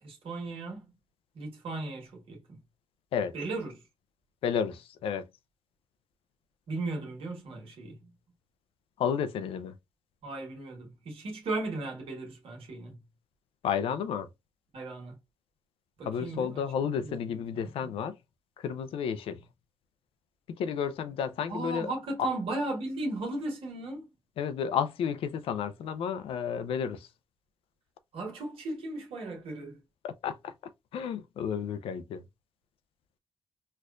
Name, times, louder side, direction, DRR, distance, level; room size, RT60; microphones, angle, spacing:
voice 1, 0.0-0.9 1.3-2.6 3.3-3.8 6.7-8.1 10.2-13.0 14.7-15.2 16.0-17.2 17.5-17.9 21.5-24.1 28.1-29.8, right 2 dB, 75° right, 1.4 m, -36 dB
voice 2, 4.4-5.3 9.0-9.7 13.6-14.3 16.0-18.1 18.6-19.4 20.5-21.9 24.4-27.1 30.0-30.5 30.9-32.2, left 7 dB, 80° left, 0.5 m, -32 dB
4.4 x 2.4 x 2.3 m
supercardioid pair, 45°, 9 cm